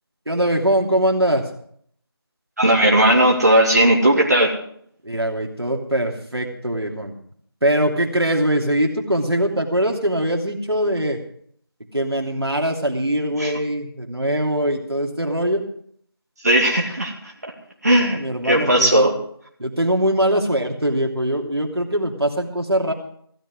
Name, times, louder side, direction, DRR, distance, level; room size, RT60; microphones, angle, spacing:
voice 1, 0.3-1.4 5.0-7.1 7.6-11.2 11.9-15.6 18.1-19.1 19.6-22.9, right 1 dB, 75° right, 1 dB, 2.9 m, -22 dB
voice 2, 2.6-4.5 13.4-13.5 16.4-17.3 17.8-19.1, right 1 dB, 40° right, -2 dB, 2.4 m, -17 dB
16.0 x 12.5 x 4.9 m, 0.64 s
figure-of-eight pair, 170°, 13 cm